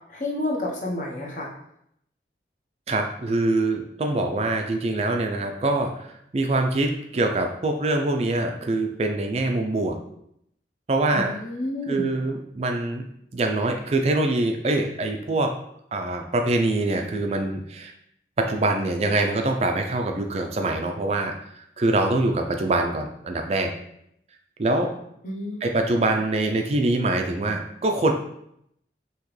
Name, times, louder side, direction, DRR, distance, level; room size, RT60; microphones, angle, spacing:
voice 1, 0.1-1.5 11.1-12.1 25.2-25.9, left 1 dB, 45° left, -2 dB, 0.9 m, -30 dB
voice 2, 2.9-10.0 10.9-11.3 11.9-13.0 13.3-15.6 15.9-17.9 18.4-21.3 21.8-23.7 24.6-24.9 25.6-28.1, right 2 dB, 35° right, 4 dB, 0.4 m, -24 dB
5.7 x 3.0 x 3.1 m, 0.74 s
head